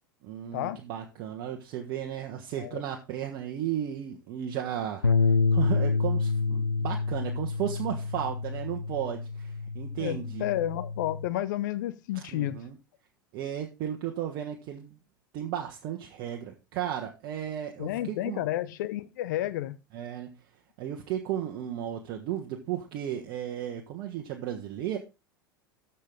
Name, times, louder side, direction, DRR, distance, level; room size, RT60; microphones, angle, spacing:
voice 1, 0.2-10.5 12.1-12.8 13.3-14.9 15.3-18.5 19.9-20.4 20.8-25.0, right 10 dB, 45° right, 1.4 m, -34 dB
Bass guitar, 5.0-11.3, left 4 dB, 90° left, 0.4 m, -28 dB
voice 2, 10.0-12.6 17.8-19.8, left 13 dB, 60° left, 0.9 m, -31 dB
13.5 x 5.7 x 3.8 m
figure-of-eight pair, 80°, 11 cm